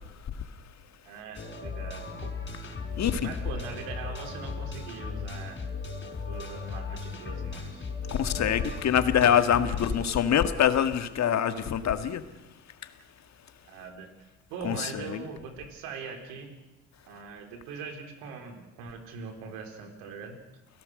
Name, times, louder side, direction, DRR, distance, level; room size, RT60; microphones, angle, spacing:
voice 1, 1.0-2.3 3.2-5.6 6.2-7.9 13.6-14.1 14.5-16.6 17.1-20.4, right 5 dB, 80° right, 5 dB, 4.2 m, -41 dB
sound 1, 1.3-10.0, left 4 dB, 30° left, 5.2 m, -37 dB
voice 2, 3.0-3.3 8.1-12.2 14.6-15.2, left 9 dB, 50° left, 9 dB, 1.9 m, -25 dB
29.5 x 17.0 x 6.6 m, 1.0 s
hypercardioid pair, 70°, 34 cm